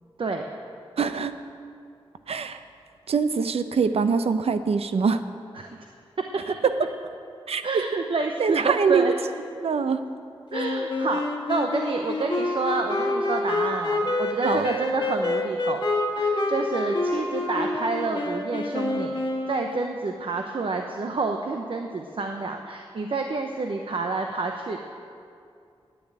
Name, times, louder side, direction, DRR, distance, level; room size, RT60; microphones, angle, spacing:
voice 1, 1.0-1.4 2.3-2.6 3.1-5.2 7.5-7.8 8.4-9.1 9.6-10.0 14.4-14.7, right 5 dB, 90° right, 10 dB, 0.7 m, -24 dB
voice 2, 7.6-9.1 10.5-15.8 16.2-19.2 19.5-24.8, right 3 dB, 60° right, 3 dB, 0.8 m, -29 dB
Wind instrument woodwind instrument, 10.5-20.0, left 2 dB, 50° left, 1.8 m, -27 dB
10.5 x 9.6 x 8.8 m, 2.5 s
wide cardioid pair, 115°, 10 cm